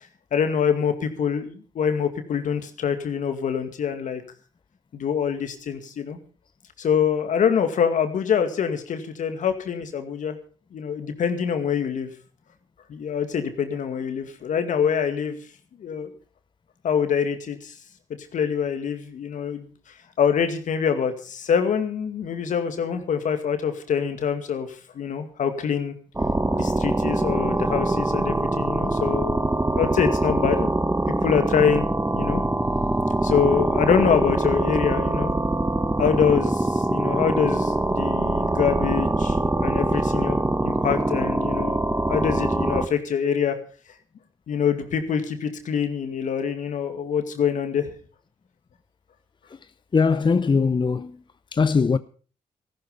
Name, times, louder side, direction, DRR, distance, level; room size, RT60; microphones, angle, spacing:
voice 1, 0.3-4.2 4.9-6.2 6.8-10.4 10.7-12.1 12.9-15.4 15.8-16.1 16.8-17.7 18.1-19.7 20.2-26.0 26.5-30.9 31.2-31.9 32.1-32.4 33.2-35.3 36.0-43.6 44.5-47.9, left 7 dB, 70° left, 2.2 m, -25 dB
sound 1, 26.2-42.9, right 2 dB, 15° right, 1.3 m, -23 dB
voice 2, 49.9-51.2 51.5-52.0, left 5 dB, 35° left, 0.7 m, -20 dB
14.5 x 12.5 x 5.5 m
supercardioid pair, 50°, 14 cm